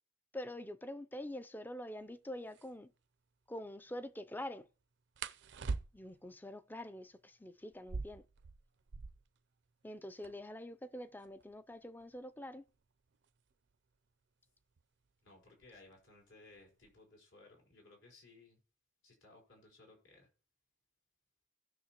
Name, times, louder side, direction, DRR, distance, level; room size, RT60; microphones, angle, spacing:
voice 1, 0.3-2.9 3.5-4.7 5.9-8.2 9.8-12.6, left 1 dB, 10° left, 0.4 m, -45 dB
sound 1, 2.0-2.1 2.5-2.7 5.2-6.3 7.7-9.4 9.7-9.8 10.0-10.6 11.2-13.8 14.8-15.1 15.5-15.9 16.3-17.0, right 4 dB, 60° right, 0.5 m, -44 dB
voice 2, 15.2-18.6 19.0-20.3, left 2 dB, 75° left, 4.2 m, -60 dB
17.5 x 6.4 x 2.9 m
head